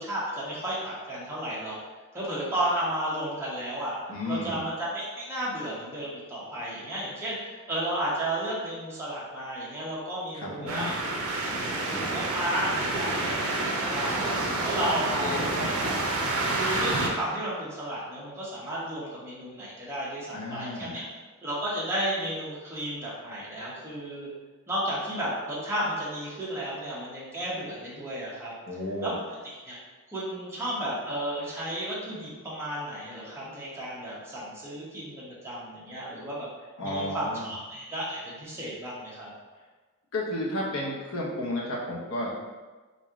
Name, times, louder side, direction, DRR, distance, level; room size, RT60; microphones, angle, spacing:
voice 1, 0.0-1.8 2.1-4.0 4.3-10.9 11.5-14.3 14.6-16.0 16.5-21.0 21.4-24.3 24.7-28.5 29.0-29.1 29.7-29.8 30.1-36.5 36.8-39.3, right 1 dB, 10° right, -8 dB, 0.9 m, -33 dB
voice 2, 4.1-4.7 10.3-10.9 14.9-15.7 20.3-21.1 28.7-29.2 36.8-37.5 40.1-42.3, left 1 dB, 65° left, -4 dB, 0.9 m, -33 dB
sound 1, 10.7-17.1, right 2 dB, 65° right, 0.6 m, -28 dB
3.1 x 2.7 x 3.6 m, 1.3 s
head